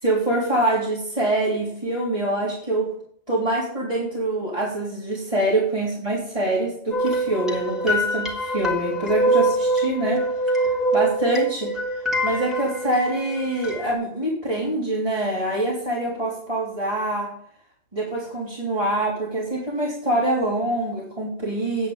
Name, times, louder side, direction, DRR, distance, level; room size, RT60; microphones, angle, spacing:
voice 1, 0.0-2.9 3.3-10.6 10.9-17.3 17.9-21.9, right 1 dB, 30° right, -7 dB, 3.6 m, -25 dB
sound 1, 6.9-13.9, right 1 dB, ahead, 3.3 m, -24 dB
10.0 x 9.8 x 5.3 m, 0.62 s
omnidirectional pair, 1.2 m